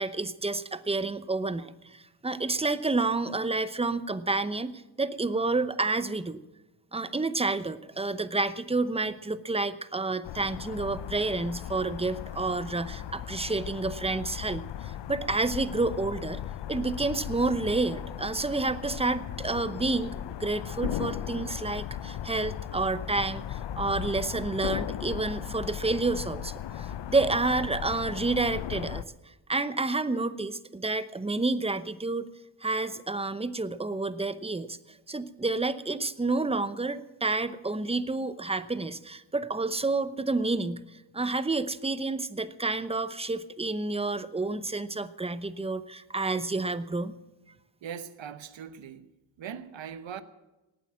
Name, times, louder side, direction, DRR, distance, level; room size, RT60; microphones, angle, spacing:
voice 1, 0.0-4.7 5.0-6.4 6.9-16.4 16.7-20.1 20.4-29.0 29.5-32.3 32.6-34.8 35.1-40.8 41.1-47.2, right 3 dB, 15° right, 0.8 m, -29 dB
sound 1, 10.2-29.0, left 11 dB, 65° left, 0.7 m, -37 dB
voice 2, 47.8-49.1 49.4-50.2, right 8 dB, 75° right, 1.1 m, -40 dB
18.0 x 9.2 x 7.4 m
cardioid pair, 70°, 45 cm